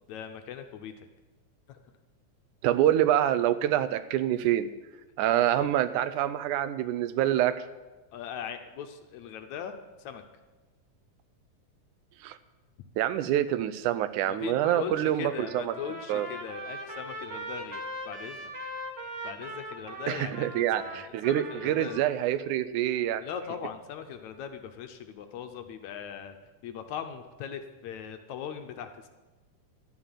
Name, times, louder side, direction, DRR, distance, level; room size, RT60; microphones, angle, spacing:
voice 1, 0.1-1.1 1.7-1.8 5.4-5.7 8.1-10.2 14.3-18.5 19.2-22.0 23.2-26.4 26.6-29.1, left 8 dB, 70° left, 7 dB, 2.0 m, -40 dB
voice 2, 2.6-4.7 5.2-7.6 12.2-12.4 13.0-15.7 16.1-16.3 20.1-23.2, right 12 dB, 80° right, 13 dB, 2.0 m, -26 dB
Trumpet, 15.2-22.0, right 1 dB, 35° right, 1.2 m, -40 dB
12.5 x 7.6 x 9.0 m, 1.2 s
omnidirectional pair, 3.6 m